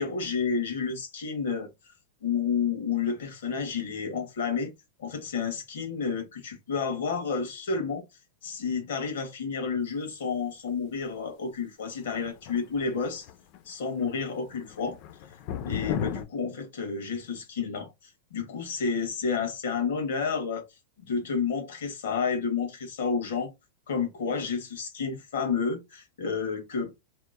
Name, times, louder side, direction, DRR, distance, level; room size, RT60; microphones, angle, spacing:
voice 1, 0.0-1.9 2.2-4.7 5.0-8.0 8.4-13.3 13.6-15.0 15.6-17.9 18.3-20.6 21.1-23.5 23.9-26.9, left 5 dB, 90° left, 1.1 m, -30 dB
sound 1, 12.0-13.6 13.9-14.2 14.5-16.2, left 9 dB, 45° left, 0.3 m, -35 dB
2.8 x 2.0 x 2.4 m
supercardioid pair, 155°, 0 cm